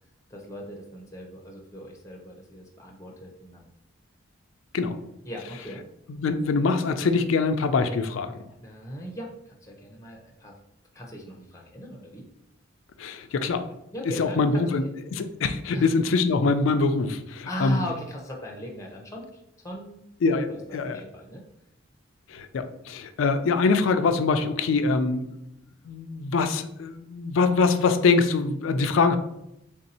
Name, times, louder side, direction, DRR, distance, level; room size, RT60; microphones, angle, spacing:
voice 1, 0.3-3.7 5.2-5.8 8.6-10.6 10.9-12.3 13.9-14.6 15.7-15.9 17.5-20.0 20.3-21.4, equal, 15° left, 0 dB, 0.6 m, -38 dB
voice 2, 6.1-8.4 13.0-13.7 14.2-14.8 15.1-17.8 20.2-21.0 22.3-25.3 25.8-29.2, left 4 dB, 70° left, 9 dB, 0.4 m, -24 dB
3.5 x 2.6 x 4.1 m, 0.82 s
head